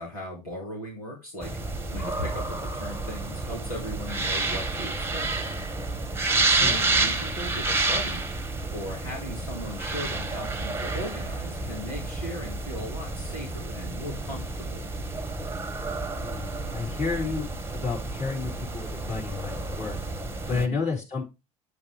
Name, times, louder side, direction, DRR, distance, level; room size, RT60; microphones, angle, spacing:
voice 1, 0.0-1.5 1.9-5.3 6.5-8.2 8.7-14.8 20.5-20.8, equal, 85° left, -1 dB, 2.3 m, -37 dB
sound 1, 1.4-20.7, right 3 dB, 15° right, 1.2 m, -30 dB
voice 2, 6.3-6.8 16.2-17.5 17.7-20.0 20.5-21.2, left 4 dB, 40° left, -3 dB, 4.8 m, -31 dB
8.2 x 7.2 x 3.4 m, 0.26 s
figure-of-eight pair, 65°, 19 cm